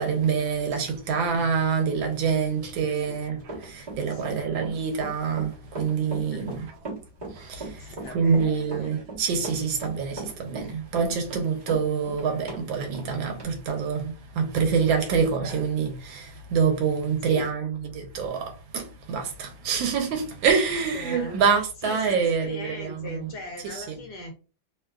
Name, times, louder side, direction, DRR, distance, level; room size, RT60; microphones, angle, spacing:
voice 1, 0.0-6.7 7.4-7.6 8.1-23.3 23.6-23.8, right 6 dB, 85° right, 1.4 m, -26 dB
Run, 3.4-12.6 12.9-13.1 13.4-13.5, right 3 dB, 35° right, 0.8 m, -37 dB
voice 2, 4.1-4.4 6.3-6.5 7.8-9.0 17.3-17.5 20.9-21.4 21.8-24.3, left 1 dB, 70° left, 1.0 m, -39 dB
3.2 x 2.2 x 2.2 m
omnidirectional pair, 2.1 m